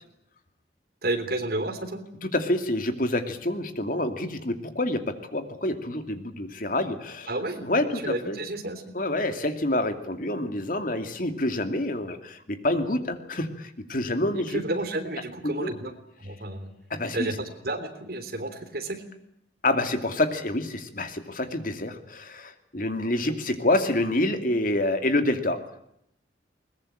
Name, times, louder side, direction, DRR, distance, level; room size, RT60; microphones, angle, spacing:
voice 1, 1.0-2.0 7.3-7.7 8.0-8.9 14.3-15.9 16.2-16.7 17.1-19.0 23.3-23.4, right 2 dB, 55° right, 8 dB, 3.4 m, -31 dB
voice 2, 2.3-7.3 7.6-8.4 8.9-14.6 15.4-15.7 16.9-17.3 19.6-25.6, left 1 dB, 50° left, 8 dB, 2.6 m, -27 dB
21.5 x 21.0 x 8.8 m, 0.76 s
head